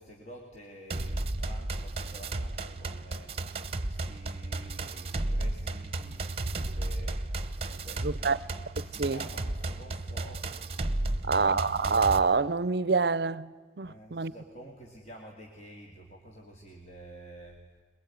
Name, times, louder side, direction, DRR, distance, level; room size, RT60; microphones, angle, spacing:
voice 1, 0.0-7.2 7.7-8.4 8.8-10.4 11.1-11.4 13.8-17.6, right 1 dB, 40° left, 2.5 m, -50 dB
sound 1, 0.9-12.2, right 2 dB, 35° right, 1.0 m, -34 dB
voice 2, 8.0-8.4 9.0-9.2 11.2-13.5 13.8-14.3, right 4 dB, 65° right, 0.6 m, -26 dB
21.5 x 21.5 x 9.3 m
head